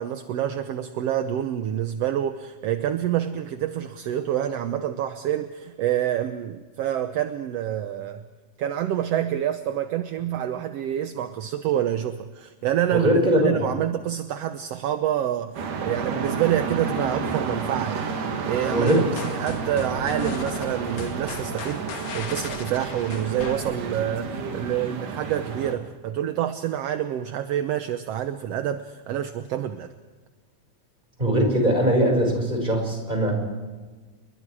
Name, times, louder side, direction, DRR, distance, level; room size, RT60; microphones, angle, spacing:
voice 1, 0.0-8.2 8.6-15.6 15.8-18.1 18.4-29.9, right 11 dB, 70° right, 8 dB, 1.7 m, -27 dB
voice 2, 12.9-13.6 18.7-19.0 31.2-33.3, equal, 15° right, 2 dB, 6.0 m, -21 dB
sound 1, 15.6-25.7, right 5 dB, 90° right, 3.9 m, -31 dB
sound 2, 18.9-24.1, left 4 dB, 80° left, 3.6 m, -37 dB
29.5 x 23.0 x 4.9 m, 1.4 s
omnidirectional pair, 3.6 m